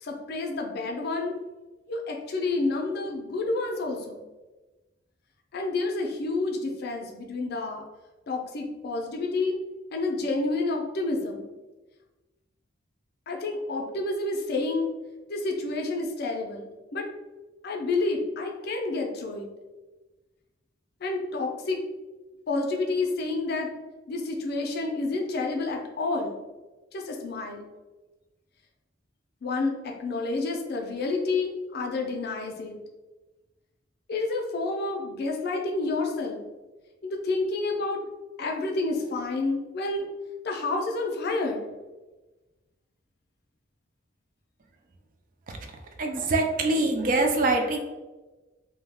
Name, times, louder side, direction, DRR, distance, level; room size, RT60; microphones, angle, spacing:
voice 1, 0.0-1.4 1.9-4.2 5.5-7.8 8.3-9.6 9.9-11.5 13.3-14.9 15.3-17.1 17.6-19.5 21.0-21.8 22.5-23.7 24.1-26.4 26.9-27.7 29.4-32.8 34.1-36.4 37.1-38.0 38.4-40.1 40.4-41.7, left 3 dB, 50° left, 2 dB, 0.4 m, -29 dB
voice 2, 46.0-47.8, right 2 dB, 40° right, 4 dB, 0.3 m, -24 dB
2.2 x 2.1 x 3.4 m, 1.1 s
head